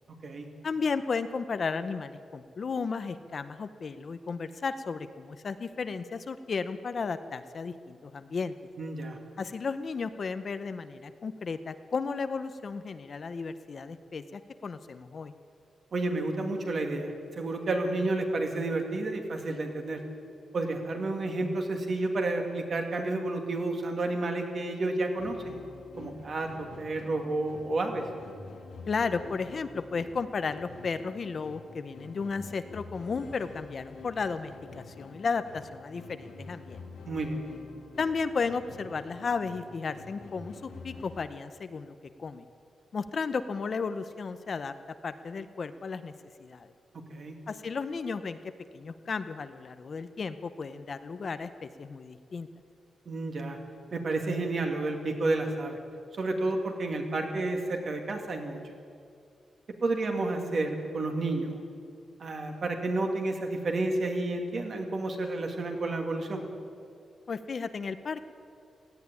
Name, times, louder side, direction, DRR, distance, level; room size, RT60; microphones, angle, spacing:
voice 1, 0.6-8.5 9.4-15.3 28.9-36.8 38.0-42.5 42.9-44.7 45.0-46.1 46.4-46.7 47.5-52.5 67.3-68.2, left 5 dB, 40° left, 11 dB, 0.7 m, -34 dB
voice 2, 8.8-9.2 15.9-20.0 20.5-25.6 26.0-26.5 26.8-28.0 37.1-37.4 47.1-47.4 53.1-53.6 53.9-55.8 56.2-58.6 59.8-61.6 62.2-66.4, right 2 dB, 40° right, 3 dB, 2.3 m, -30 dB
sound 1, 25.2-41.2, left 4 dB, 90° left, 3.0 m, -47 dB
17.5 x 15.5 x 9.7 m, 2.3 s
wide cardioid pair, 175°, 0 cm